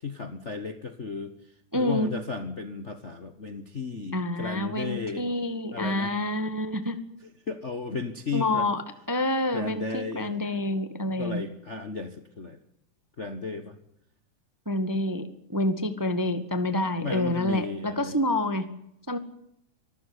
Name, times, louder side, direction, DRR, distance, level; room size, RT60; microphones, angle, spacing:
voice 1, 0.0-1.3 1.7-5.3 5.7-6.1 7.5-8.7 9.5-10.3 11.1-12.6 13.2-13.8 17.0-18.2, left 4 dB, 85° left, 9 dB, 0.6 m, -34 dB
voice 2, 1.7-2.1 4.1-7.0 8.3-8.8 9.1-11.4 14.6-15.2 15.5-18.6 19.1-19.2, left 1 dB, 15° right, 10 dB, 0.7 m, -27 dB
24.5 x 15.0 x 9.7 m, 0.77 s
omnidirectional pair, 3.6 m